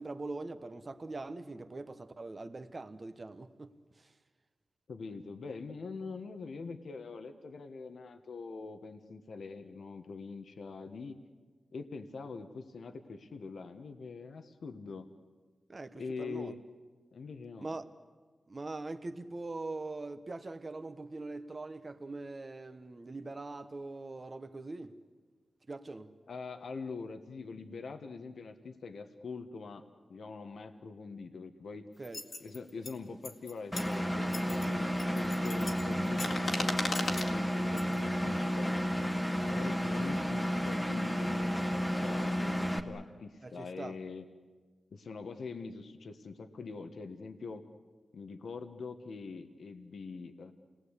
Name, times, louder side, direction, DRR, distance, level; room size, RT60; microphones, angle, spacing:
voice 1, 0.0-4.1 15.7-16.5 17.6-17.9 18.5-24.9 25.7-26.1 32.0-32.2 43.4-44.0, right 2 dB, 35° right, 1.1 m, -42 dB
voice 2, 4.9-11.2 11.7-15.1 15.9-16.6 17.1-17.7 26.3-29.8 30.1-31.8 32.4-38.8 39.4-44.3 44.9-47.6 48.1-50.5, left 4 dB, 80° left, 1.5 m, -44 dB
sound 1, 32.0-32.9 33.2-33.9 34.3-34.7 35.0-37.3 37.8-38.0, left 3 dB, 55° left, 2.0 m, -37 dB
Engine, 33.7-42.8, equal, ahead, 1.4 m, -32 dB
29.0 x 19.5 x 8.3 m
wide cardioid pair, 120°, 0 cm